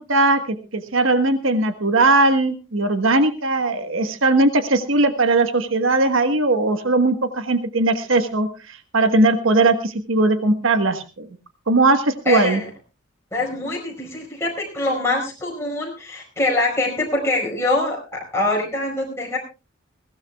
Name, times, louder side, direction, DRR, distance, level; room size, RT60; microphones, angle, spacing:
voice 1, 0.0-11.3 11.7-12.6, right 2 dB, 80° right, 9 dB, 1.3 m, -19 dB
voice 2, 12.2-12.7 13.3-19.4, left 2 dB, 15° left, -2 dB, 5.0 m, -24 dB
22.0 x 16.5 x 2.3 m, 0.30 s
head